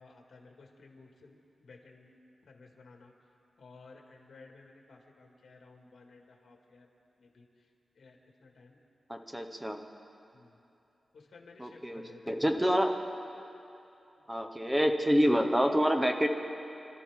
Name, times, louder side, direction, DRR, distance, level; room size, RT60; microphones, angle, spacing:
voice 1, 0.0-2.1 2.5-3.1 3.6-6.9 7.2-7.5 8.0-8.8 10.3-10.6 11.1-12.6, left 3 dB, 75° left, 1 dB, 2.0 m, -55 dB
voice 2, 9.1-9.8 11.6-12.9 14.3-16.3, equal, 5° right, 5 dB, 0.8 m, -27 dB
26.5 x 12.5 x 3.7 m, 2.7 s
wide cardioid pair, 165°, 0 cm